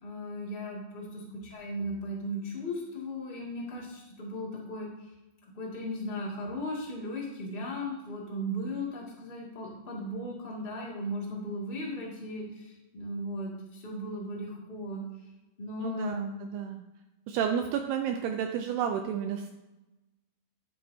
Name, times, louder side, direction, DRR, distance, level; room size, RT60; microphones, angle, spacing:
voice 1, 0.0-5.1 5.5-15.0 15.6-16.3, equal, 40° left, -4 dB, 0.7 m, -37 dB
voice 2, 15.8-16.9 17.3-19.5, right 8 dB, 80° right, 5 dB, 2.4 m, -31 dB
11.5 x 9.5 x 2.8 m, 1.0 s
omnidirectional pair, 5.2 m